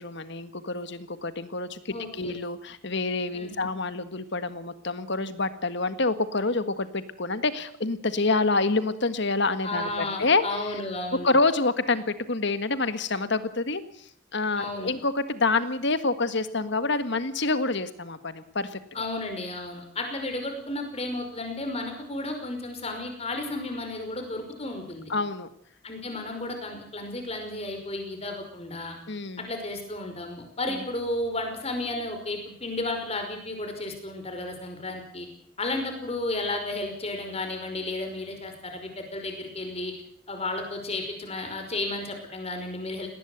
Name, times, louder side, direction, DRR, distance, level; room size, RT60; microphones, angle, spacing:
voice 1, 0.0-10.4 11.2-13.8 14.3-19.1 25.1-25.5 29.1-29.5 30.7-30.8, left 3 dB, 55° left, 12 dB, 1.7 m, -27 dB
voice 2, 1.9-2.4 3.3-3.7 9.6-11.3 14.6-15.0 18.9-25.1 25.8-29.0 29.4-35.3 35.6-39.9 40.3-43.1, left 2 dB, 30° left, 5 dB, 5.3 m, -33 dB
19.0 x 19.0 x 8.1 m, 0.65 s
head